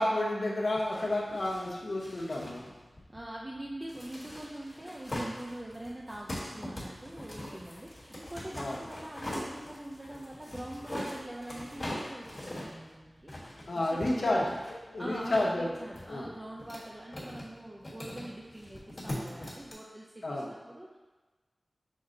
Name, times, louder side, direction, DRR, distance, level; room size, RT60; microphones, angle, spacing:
voice 1, 0.0-2.6 8.6-8.8 13.7-14.5 14.9-15.7 16.1-16.3 20.2-20.5, left 1 dB, 80° left, -4 dB, 0.8 m, -30 dB
digging through box, 0.7-19.7, left 1 dB, 45° left, 1.2 m, -43 dB
voice 2, 3.1-14.6 15.0-21.0, right 1 dB, 25° right, -3 dB, 0.4 m, -43 dB
6.3 x 2.1 x 3.8 m, 1.2 s
wide cardioid pair, 75°, 0 cm